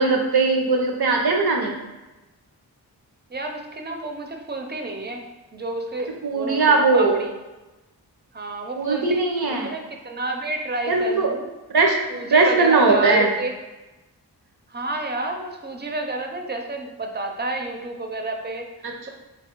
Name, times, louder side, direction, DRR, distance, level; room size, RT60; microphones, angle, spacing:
voice 1, 0.0-1.8 6.2-7.2 8.8-9.7 10.9-11.3 11.7-12.0 12.3-13.3 18.8-19.1, right 3 dB, 70° right, 1 dB, 0.8 m, -19 dB
voice 2, 3.3-7.3 8.3-11.5 12.1-13.5 14.7-18.7, right 2 dB, 25° right, 3 dB, 0.6 m, -30 dB
3.2 x 3.1 x 4.5 m, 1.1 s
wide cardioid pair, 65°, 40 cm